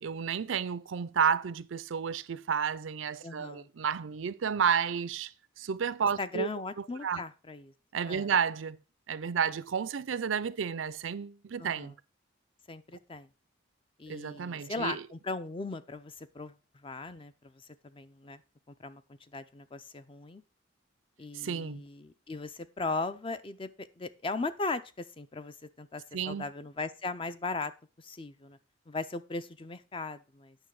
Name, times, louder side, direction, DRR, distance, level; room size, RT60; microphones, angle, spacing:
voice 1, 0.0-5.3 5.6-6.5 7.0-7.3 7.9-8.8 9.1-11.9 14.1-15.0 21.3-21.8 26.1-26.4, right 7 dB, 80° right, 0.5 m, -31 dB
voice 2, 3.2-3.7 6.2-7.7 8.1-8.3 11.6-11.9 12.7-13.3 14.0-16.5 16.8-18.4 18.7-19.0 19.3-20.4 21.2-27.7 28.0-28.6 28.9-30.6, left 3 dB, 25° left, 0.5 m, -38 dB
9.0 x 6.0 x 4.7 m
head